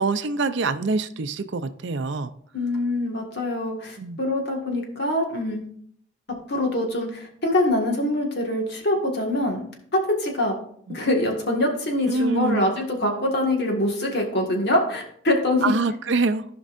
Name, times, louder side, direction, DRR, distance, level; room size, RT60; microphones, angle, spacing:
voice 1, 0.0-2.4 4.0-4.2 10.9-11.0 12.1-12.7 15.6-16.4, right 3 dB, 60° right, 11 dB, 0.5 m, -25 dB
voice 2, 2.5-5.6 6.5-9.6 9.9-10.5 10.9-15.8, left 1 dB, 55° left, 1 dB, 1.7 m, -24 dB
15.0 x 5.3 x 2.5 m, 0.64 s
head